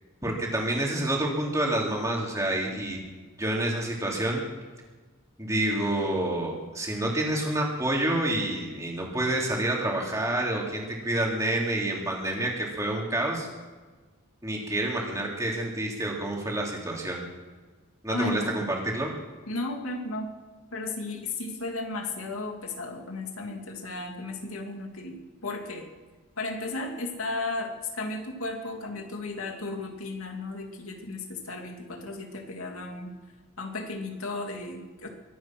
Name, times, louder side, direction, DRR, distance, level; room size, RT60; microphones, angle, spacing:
voice 1, 0.2-3.0 3.4-4.4 5.4-13.5 14.4-17.2 18.0-19.1, right 1 dB, 15° right, -2 dB, 3.2 m, -28 dB
voice 2, 18.1-18.7 19.5-20.3 20.7-25.2 25.4-25.8 26.4-33.1 33.6-35.1, left 2 dB, 80° left, 2 dB, 2.7 m, -34 dB
23.5 x 9.2 x 6.1 m, 1.4 s
head